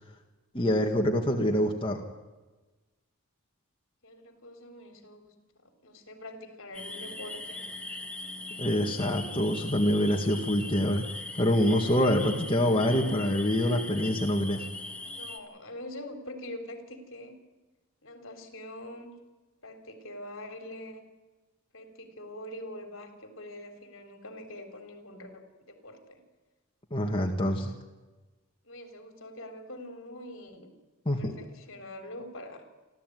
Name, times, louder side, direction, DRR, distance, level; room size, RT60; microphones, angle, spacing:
voice 1, 0.5-2.0 8.6-11.0 11.3-14.6 26.9-27.7 31.1-31.3, equal, 25° left, 1 dB, 2.0 m, -25 dB
voice 2, 4.0-7.6 9.6-9.7 15.1-17.4 18.0-19.1 19.6-21.0 21.7-26.2 28.6-30.7 31.2-32.7, left 1 dB, 60° left, 6 dB, 3.7 m, -44 dB
sound 1, 6.7-15.4, left 2 dB, 5° left, 1.8 m, -40 dB
28.5 x 13.0 x 9.4 m, 1.2 s
head